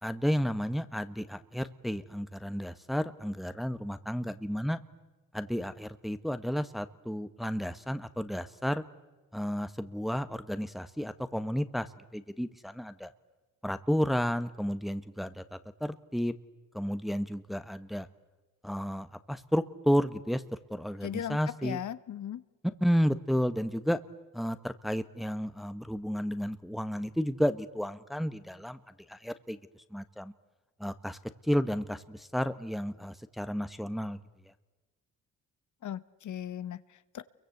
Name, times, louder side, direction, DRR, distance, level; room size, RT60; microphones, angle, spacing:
voice 1, 0.0-4.8 5.3-8.8 9.3-11.9 12.1-13.1 13.6-16.3 16.7-18.1 18.6-20.4 20.7-21.8 22.8-24.0 24.3-28.8 29.1-29.6 29.9-30.3 30.8-31.2 31.5-34.2, equal, ahead, 11 dB, 1.3 m, -32 dB
voice 2, 21.0-22.4 35.8-37.2, left 10 dB, 65° left, 15 dB, 1.2 m, -38 dB
29.5 x 23.0 x 8.0 m, 1.2 s
cardioid pair, 75°, 32 cm